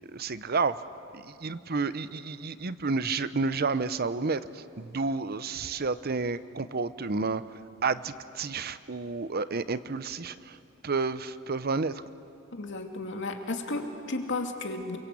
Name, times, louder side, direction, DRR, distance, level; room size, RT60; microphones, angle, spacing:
voice 1, 0.1-0.8 1.1-7.4 7.8-10.6 10.8-11.9, right 4 dB, 50° right, 14 dB, 0.8 m, -30 dB
voice 2, 12.6-15.0, left 2 dB, 60° left, 3 dB, 2.7 m, -33 dB
28.5 x 23.5 x 8.5 m, 2.6 s
head